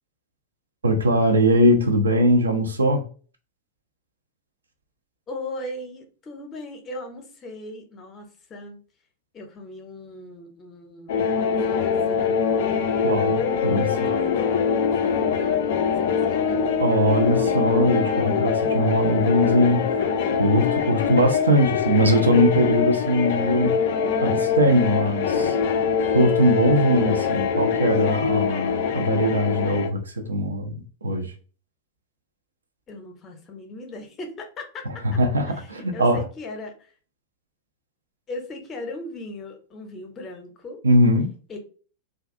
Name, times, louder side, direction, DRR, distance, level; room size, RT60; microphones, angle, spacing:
voice 1, 0.8-3.0 13.0-14.0 16.8-20.1 20.4-23.8 24.2-25.5 26.1-30.7 31.0-31.3 34.8-36.3 40.8-41.3, equal, 75° right, 0.5 m, -21 dB
voice 2, 5.3-8.8 9.3-11.3 11.6-12.9 13.8-16.8 32.9-35.2 35.5-36.9 38.3-40.8 41.5-41.6, left 1 dB, 25° left, 0.7 m, -38 dB
sound 1, 11.1-29.9, left 6 dB, 55° left, 0.3 m, -23 dB
2.3 x 2.3 x 2.5 m
figure-of-eight pair, 90°, 0 cm